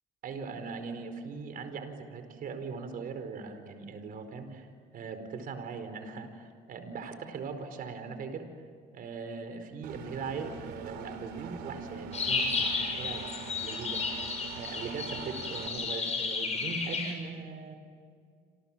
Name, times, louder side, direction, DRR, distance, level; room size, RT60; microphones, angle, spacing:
voice 1, 0.2-4.7 4.9-8.5 8.9-13.2 13.6-14.2 14.5-17.8, right 5 dB, 55° right, 8 dB, 4.7 m, -40 dB
Engine, 9.8-15.7, right 6 dB, 85° right, 4.1 m, -43 dB
sound 1, 12.1-17.1, left 4 dB, 40° left, 7.5 m, -33 dB
28.0 x 28.0 x 7.5 m, 2.1 s
cardioid pair, 110°, 17 cm